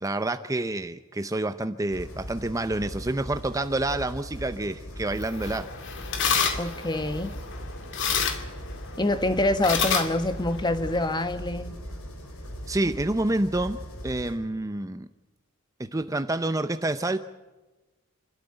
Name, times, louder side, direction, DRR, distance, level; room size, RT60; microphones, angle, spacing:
voice 1, 0.0-5.7 12.7-15.1 15.8-17.2, right 2 dB, 15° right, 10 dB, 0.7 m, -28 dB
sound 1, 1.9-14.4, equal, 75° left, 4.6 m, -39 dB
sound 2, 5.1-11.1, left 6 dB, 60° left, 2.4 m, -30 dB
voice 2, 6.6-7.3 9.0-11.8, left 2 dB, 20° left, 10 dB, 1.4 m, -26 dB
28.0 x 13.0 x 8.9 m, 1.1 s
head